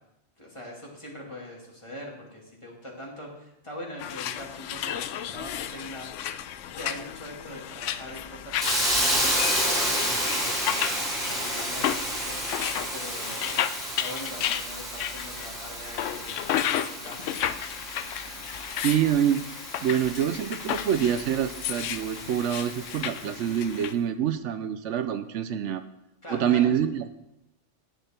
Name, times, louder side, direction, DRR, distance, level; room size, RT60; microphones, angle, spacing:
voice 1, 0.4-6.1 6.7-9.6 9.9-17.3 26.2-26.7, left 1 dB, 25° left, -2 dB, 2.5 m, -42 dB
sound 1, 4.0-23.9, left 10 dB, 85° left, 0.9 m, -33 dB
Hiss, 8.6-23.4, equal, ahead, 2.9 m, -31 dB
voice 2, 18.8-19.4 19.8-25.8 26.3-27.1, right 9 dB, 75° right, 11 dB, 0.9 m, -26 dB
9.8 x 9.4 x 4.3 m, 0.86 s
omnidirectional pair, 1.2 m